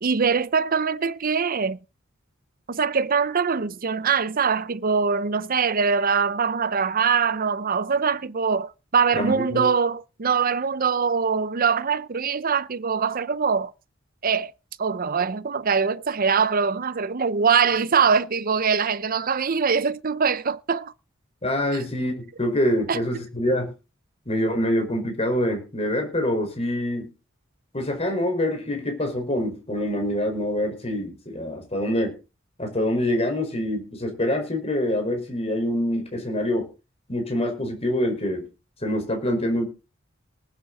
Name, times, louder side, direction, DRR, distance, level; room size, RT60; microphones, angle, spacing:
voice 1, 0.0-1.8 2.7-13.7 14.2-14.5 14.8-20.9 22.9-23.0, right 6 dB, 45° right, 0.7 m, -23 dB
voice 2, 9.1-9.7 21.4-23.7 24.3-27.1 27.7-32.1 32.6-36.6 37.1-38.5 38.8-39.7, left 1 dB, 30° left, 5.0 m, -25 dB
19.5 x 9.0 x 4.2 m
head